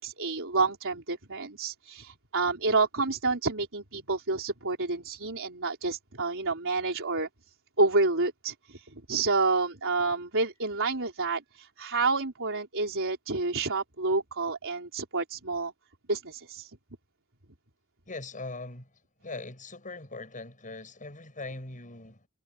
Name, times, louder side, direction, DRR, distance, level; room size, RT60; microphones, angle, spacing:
voice 1, 0.0-7.3 7.8-15.7 16.1-16.8, right 3 dB, 65° right, 4.3 m, -29 dB
voice 2, 18.1-18.9 19.2-22.3, left 3 dB, 35° left, 7.8 m, -41 dB
head